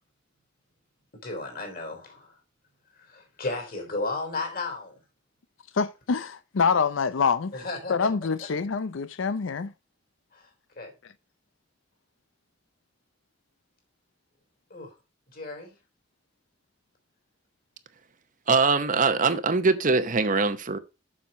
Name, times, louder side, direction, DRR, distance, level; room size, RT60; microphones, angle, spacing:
voice 1, 1.2-2.3 3.0-5.0 7.5-8.1 10.3-10.5 10.8-10.9 14.7-14.9 15.3-15.8, left 2 dB, 50° left, 3.6 m, -34 dB
voice 2, 5.7-7.6 7.9-9.7, left 5 dB, 90° left, 0.5 m, -26 dB
voice 3, 18.5-20.8, right 4 dB, 45° right, 0.9 m, -22 dB
7.4 x 6.7 x 5.2 m
head